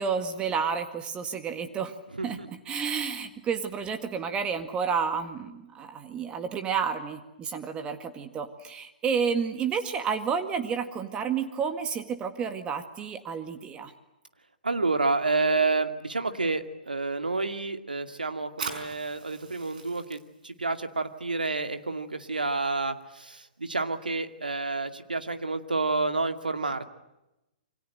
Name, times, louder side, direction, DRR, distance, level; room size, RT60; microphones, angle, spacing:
voice 1, 0.0-1.9 2.2-13.9, right 6 dB, 20° right, 7 dB, 1.9 m, -30 dB
voice 2, 14.6-20.2 20.4-26.8, right 3 dB, 80° right, 8 dB, 2.4 m, -29 dB
Fire, 18.4-25.7, right 5 dB, 65° right, 5.6 m, -45 dB
28.0 x 24.5 x 7.9 m, 0.92 s
figure-of-eight pair, 115°, 5 cm